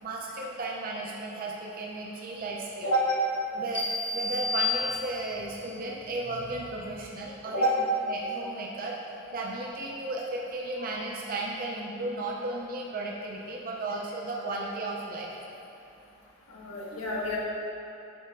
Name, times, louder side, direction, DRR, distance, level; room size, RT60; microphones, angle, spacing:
voice 1, 0.0-2.9 3.5-3.8 4.1-7.7 8.1-9.0 9.3-15.3, right 2 dB, 45° right, -2 dB, 0.6 m, -34 dB
sound 1, 3.7-5.6, left 3 dB, 5° left, 0.8 m, -31 dB
voice 2, 16.5-17.4, right 1 dB, 85° left, -5 dB, 1.3 m, -28 dB
8.0 x 3.4 x 4.5 m, 2.8 s
head